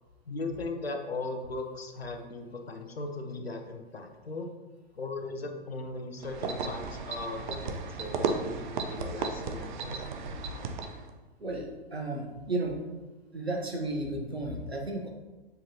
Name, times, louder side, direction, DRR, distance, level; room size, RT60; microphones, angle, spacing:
voice 1, 0.3-4.5 4.9-10.2, left 3 dB, 75° left, 5 dB, 1.1 m, -38 dB
sound 1, 6.2-11.1, right 4 dB, 50° right, 0.8 m, -34 dB
voice 2, 11.4-12.8 13.3-15.1, right 2 dB, 80° right, 1 dB, 1.4 m, -33 dB
7.4 x 6.6 x 2.9 m, 1.2 s
figure-of-eight pair, 105°, 31 cm